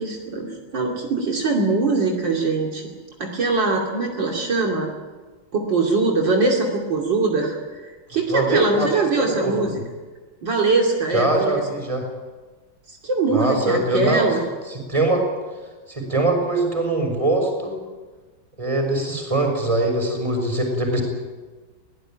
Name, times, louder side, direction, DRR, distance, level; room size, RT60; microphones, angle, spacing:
voice 1, 0.0-2.9 3.2-4.9 5.5-9.8 10.4-11.6 12.9-14.4, right 3 dB, 65° right, 0 dB, 3.4 m, -22 dB
voice 2, 8.3-9.0 9.4-9.7 11.1-12.1 13.3-14.3 14.7-15.3 15.9-17.8 18.6-21.0, right 2 dB, 15° right, 2 dB, 6.0 m, -22 dB
22.5 x 18.0 x 9.1 m, 1.3 s
omnidirectional pair, 2.2 m